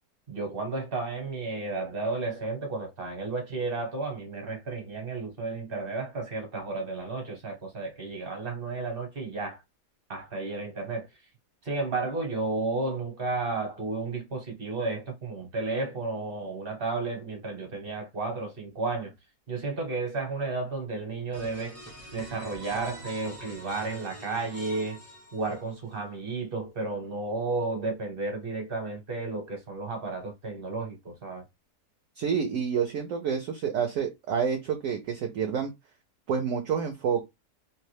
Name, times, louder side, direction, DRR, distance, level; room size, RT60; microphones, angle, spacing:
voice 1, 0.3-9.6 10.1-11.1 11.6-19.1 19.5-21.8 22.1-25.0 25.3-31.4, right 3 dB, 40° right, 1.0 m, -32 dB
sound 1, 21.3-25.9, right 2 dB, 20° right, 0.4 m, -45 dB
voice 2, 32.2-35.7 36.3-37.2, right 7 dB, 65° right, 0.9 m, -28 dB
2.7 x 2.2 x 3.2 m
omnidirectional pair, 1.7 m